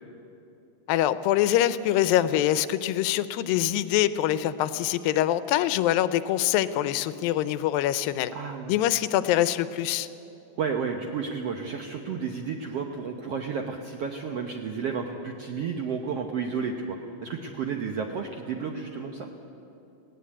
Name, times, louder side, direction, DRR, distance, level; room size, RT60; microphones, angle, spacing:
voice 1, 0.9-8.3 8.7-10.1, left 12 dB, 85° left, 14 dB, 2.4 m, -24 dB
voice 2, 8.3-8.8 10.6-19.3, right 5 dB, 75° right, 4 dB, 1.4 m, -32 dB
19.0 x 17.0 x 8.5 m, 2.9 s
omnidirectional pair, 4.1 m